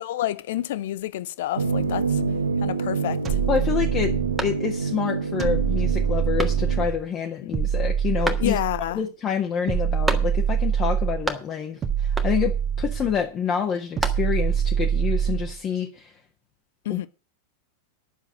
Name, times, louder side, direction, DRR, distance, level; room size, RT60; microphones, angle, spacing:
voice 1, 0.0-2.2 2.6-3.4 7.4-7.6 8.4-9.0 16.8-17.1, left 13 dB, 55° left, 0.7 m, -29 dB
sound 1, 1.6-6.9, right 4 dB, 80° right, 1.2 m, -27 dB
sound 2, 3.2-4.6 5.4-7.0 7.5-8.9 9.7-11.3 11.8-13.2 14.0-15.6, right 8 dB, 25° right, 1.6 m, -24 dB
voice 2, 3.5-4.1 4.4-8.6 8.9-12.5 12.8-16.1 16.9-17.1, left 8 dB, 30° left, 1.6 m, -27 dB
sound 3, 4.4-5.1 5.5-5.6 6.4-7.0 8.2-8.9 10.0-10.7 10.9-11.8 12.1-12.6 13.6-14.6, right 1 dB, 5° right, 1.7 m, -32 dB
10.5 x 6.9 x 7.7 m
figure-of-eight pair, 90°, 0 cm